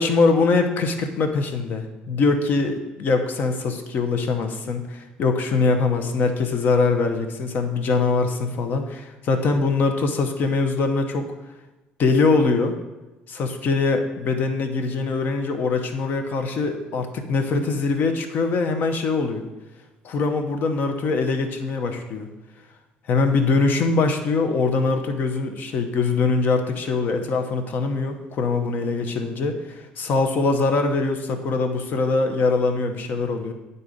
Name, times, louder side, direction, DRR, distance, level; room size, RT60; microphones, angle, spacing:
voice 1, 0.0-11.3 12.0-12.7 13.3-19.5 20.0-22.3 23.1-33.5, left 4 dB, 55° left, 6 dB, 0.9 m, -22 dB
9.2 x 3.9 x 3.9 m, 1.1 s
supercardioid pair, 95°, 4 cm